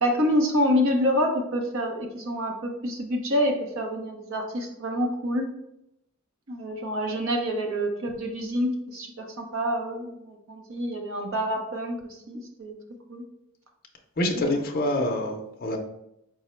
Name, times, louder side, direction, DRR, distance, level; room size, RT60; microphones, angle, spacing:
voice 1, 0.0-5.5 6.5-12.0 12.3-12.7 13.1-13.2 14.4-14.6, equal, 65° right, 3 dB, 0.8 m, -27 dB
voice 2, 14.2-15.8, left 1 dB, 45° left, 2 dB, 0.5 m, -26 dB
4.8 x 2.1 x 4.3 m, 0.81 s
head